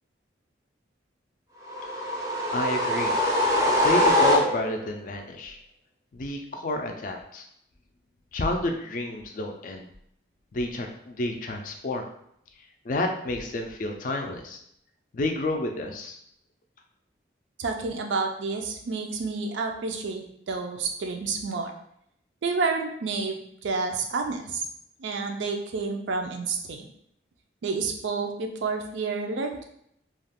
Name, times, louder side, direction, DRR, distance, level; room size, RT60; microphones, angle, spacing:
sound 1, 1.7-4.9, left 1 dB, 20° right, 0.5 m, -23 dB
voice 1, 2.5-3.2 3.8-5.6 6.1-7.4 8.3-9.9 10.5-12.1 12.9-14.6 15.1-16.2, left 1 dB, 45° left, 3 dB, 0.3 m, -29 dB
voice 2, 17.6-21.7 22.4-24.6 25.0-26.9 27.6-29.6, right 4 dB, 80° right, 3 dB, 0.4 m, -29 dB
2.3 x 2.3 x 3.4 m, 0.72 s
head